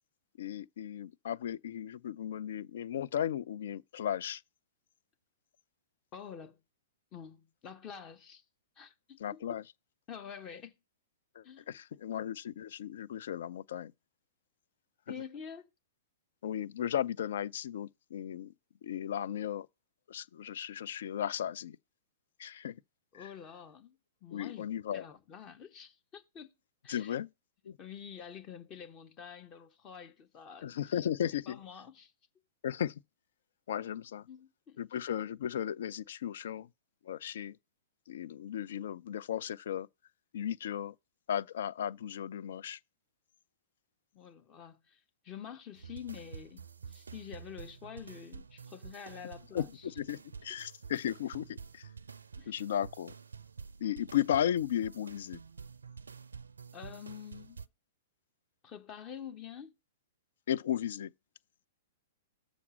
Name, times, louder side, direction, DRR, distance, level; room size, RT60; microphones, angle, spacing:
voice 1, 0.4-4.4 9.2-9.6 11.4-13.9 16.4-18.5 18.8-19.7 20.1-21.8 22.4-22.8 23.1-23.3 24.3-25.1 26.9-27.3 27.6-27.8 30.6-31.6 32.6-33.0 33.7-34.3 34.8-36.7 37.0-37.6 38.1-39.9 40.3-40.9 41.3-42.8 49.5-51.9 52.5-53.1 53.8-55.4 60.5-61.1, left 10 dB, 60° left, 0.4 m, -35 dB
voice 2, 6.1-6.6 7.1-8.4 8.8-9.4 10.1-10.7 11.4-11.7 15.1-15.7 23.1-26.5 26.8-27.2 27.8-30.7 31.5-32.1 34.3-34.9 44.1-49.9 52.4-52.5 56.7-57.6 58.6-59.7, left 8 dB, 30° left, 0.9 m, -47 dB
sound 1, 45.8-57.7, right 5 dB, 80° right, 0.4 m, -49 dB
7.1 x 5.1 x 6.1 m
figure-of-eight pair, 110°, 0 cm